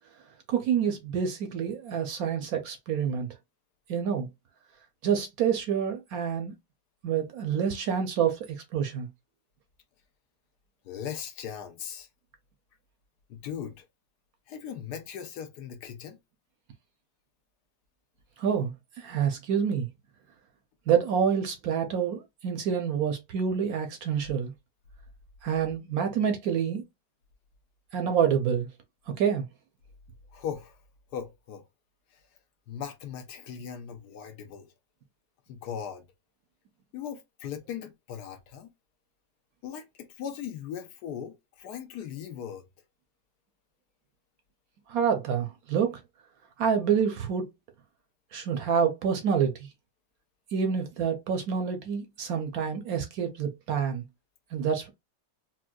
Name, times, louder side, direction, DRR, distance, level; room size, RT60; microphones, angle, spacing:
voice 1, 0.5-3.3 3.9-4.3 5.0-6.5 7.0-9.1 18.4-18.7 19.0-19.9 20.9-24.5 25.4-26.8 27.9-28.7 29.2-29.4 44.9-46.0 46.6-47.4 48.3-49.7 50.5-54.0 54.5-54.9, right 7 dB, 70° right, 0.9 m, -27 dB
voice 2, 10.8-12.1 13.3-13.9 14.5-16.2 30.3-30.8 31.1-31.6 32.1-32.2 32.7-34.7 35.5-36.0 36.9-38.7 39.6-42.7, left 8 dB, 75° left, 1.1 m, -39 dB
4.3 x 2.1 x 2.2 m
omnidirectional pair, 1.9 m